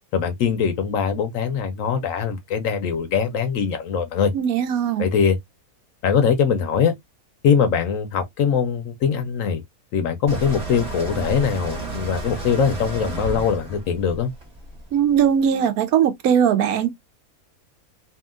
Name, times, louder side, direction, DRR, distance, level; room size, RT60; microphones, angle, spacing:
voice 1, 0.1-4.3 5.0-5.4 6.0-6.9 7.4-9.6 9.9-14.3, left 6 dB, 65° left, 0.9 m, -22 dB
voice 2, 4.3-5.1 14.9-16.9, right 8 dB, 75° right, 1.0 m, -19 dB
sound 1, 10.3-15.2, right 2 dB, 30° right, 0.9 m, -32 dB
2.8 x 2.7 x 2.3 m
omnidirectional pair, 1.6 m